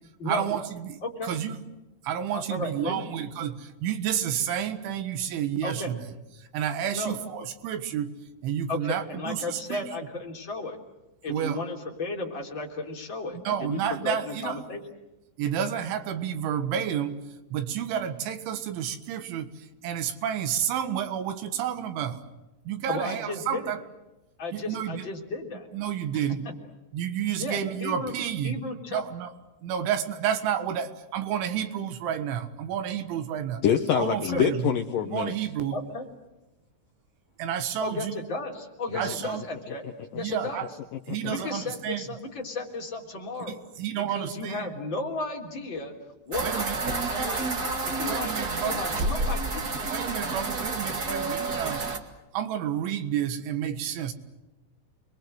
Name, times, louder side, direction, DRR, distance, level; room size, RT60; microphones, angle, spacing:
voice 1, 0.3-1.6 2.0-6.0 6.5-8.1 8.4-9.8 11.3-11.6 13.5-14.6 15.4-17.2 17.5-19.5 19.8-22.2 22.7-23.8 24.5-25.0 25.7-26.4 26.9-28.6 28.9-29.3 29.6-33.6 34.0-34.7 35.1-35.8 37.4-38.2 39.0-39.4 40.2-40.7 41.1-42.0 43.5-44.7 46.4-46.8 47.2-47.4 48.1-49.2 49.9-51.8 52.3-54.1, right 9 dB, 80° right, 3.9 m, -30 dB
voice 2, 1.0-1.4 2.3-3.1 5.6-5.9 6.9-7.2 8.7-10.8 11.2-14.8 22.9-23.7 24.4-25.7 27.4-28.1 28.4-29.0 34.2-34.4 35.7-36.1 37.8-39.9 40.2-40.6 41.3-43.6 44.0-45.9 46.3-49.7, left 2 dB, 25° left, 3.6 m, -34 dB
voice 3, 33.6-35.4 38.9-39.1, left 9 dB, 90° left, 1.9 m, -25 dB
sound 1, 46.3-52.0, right 3 dB, 50° right, 1.1 m, -29 dB
29.5 x 22.0 x 8.0 m
omnidirectional pair, 5.5 m